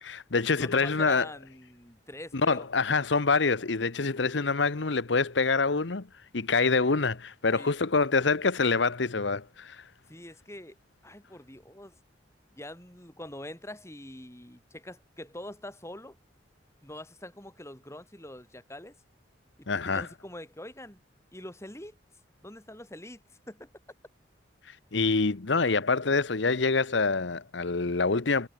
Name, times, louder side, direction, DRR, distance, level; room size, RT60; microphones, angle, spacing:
voice 1, 0.0-1.3 2.4-6.1 6.3-9.9 19.7-20.1 24.6-28.5, left 4 dB, 70° left, 1.0 m, -26 dB
voice 2, 0.5-2.7 7.5-7.7 10.1-10.8 11.0-12.0 12.5-16.2 16.8-19.0 19.6-21.0 21.3-22.0 22.4-23.2 23.5-23.7, left 1 dB, 15° left, 5.1 m, -44 dB
head